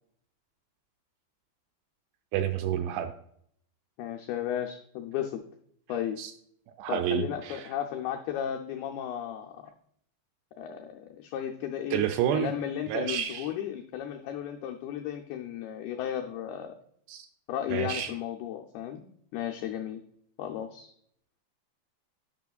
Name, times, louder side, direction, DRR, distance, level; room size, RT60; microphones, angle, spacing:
voice 1, 2.3-3.1 6.2-6.3 6.8-7.7 11.9-12.5 12.9-13.5 17.1-17.3 17.7-18.1, right 10 dB, 85° right, 7 dB, 2.5 m, -29 dB
voice 2, 4.0-5.4 5.9-6.2 6.9-9.6 10.6-12.0 12.3-16.7 17.5-19.0 19.3-20.0 20.4-20.9, left 10 dB, 90° left, 3 dB, 2.1 m, -34 dB
10.5 x 5.7 x 2.3 m, 0.68 s
omnidirectional pair, 5.1 m